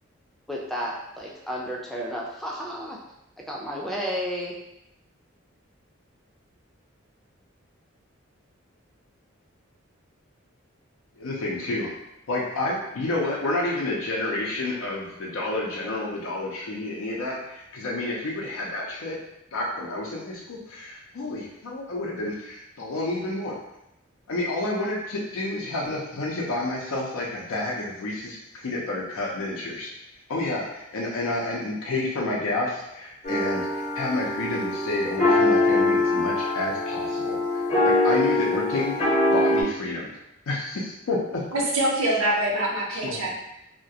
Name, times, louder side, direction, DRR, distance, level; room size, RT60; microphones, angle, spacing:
voice 1, 0.5-3.0 3.5-4.6, equal, ahead, -3 dB, 0.3 m, -32 dB
voice 2, 11.2-11.9 12.3-19.2 19.5-23.6 24.3-28.4 28.6-29.9 30.3-37.4 37.8-38.9 39.3-40.1 40.5-41.4 43.0-43.3, left 2 dB, 85° left, -3 dB, 0.5 m, -29 dB
sound 1, 33.2-39.6, left 2 dB, 30° left, 0.7 m, -23 dB
voice 3, 41.5-43.3, right 1 dB, 90° right, -2 dB, 0.6 m, -24 dB
2.3 x 2.1 x 2.7 m, 0.83 s
head